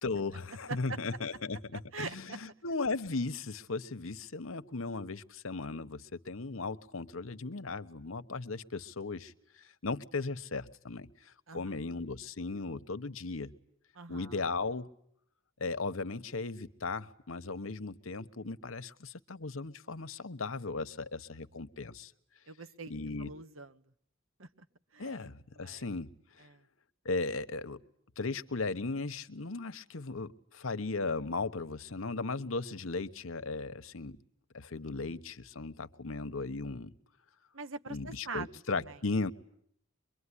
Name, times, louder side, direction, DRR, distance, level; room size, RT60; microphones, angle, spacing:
voice 1, 0.0-13.5 14.1-14.9 15.6-22.1 22.9-23.3 25.0-26.1 26.4-26.5 27.0-27.8 28.2-34.2 34.5-36.9 37.9-39.3, left 3 dB, 80° left, 11 dB, 1.2 m, -37 dB
voice 2, 1.9-2.4 11.5-11.7 13.9-14.4 22.5-22.9 23.2-23.8 24.4-24.5 24.9-25.3 25.5-25.9 26.4-26.6 37.5-39.0, right 4 dB, 70° right, 10 dB, 1.4 m, -43 dB
23.5 x 23.5 x 9.9 m, 0.68 s
head